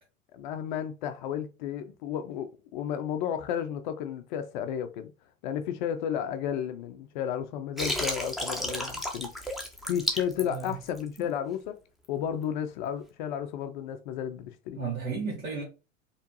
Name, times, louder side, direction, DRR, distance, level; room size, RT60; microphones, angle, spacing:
voice 1, 0.3-5.1 5.4-9.6 9.9-11.8 12.1-14.8, left 9 dB, 40° left, 0.4 m, -33 dB
Water, 7.8-11.2, equal, ahead, 0.7 m, -32 dB
voice 2, 10.4-10.7 11.2-11.3 14.8-15.6, right 4 dB, 80° right, 1.5 m, -34 dB
4.3 x 3.0 x 2.7 m
figure-of-eight pair, 80°, 41 cm